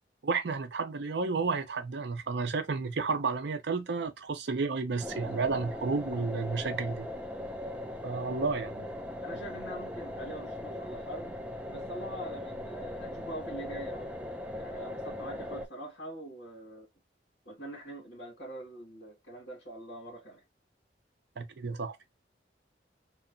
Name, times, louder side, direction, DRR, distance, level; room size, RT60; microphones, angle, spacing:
voice 1, 0.2-7.1 8.0-8.9 21.4-22.0, right 4 dB, 70° right, 0.5 m, -31 dB
sound 1, 5.0-15.7, left 1 dB, 5° right, 0.3 m, -39 dB
voice 2, 9.2-11.3 11.7-14.1 14.6-16.9 17.4-20.4, right 1 dB, 80° left, 1.5 m, -43 dB
2.8 x 2.1 x 2.5 m
head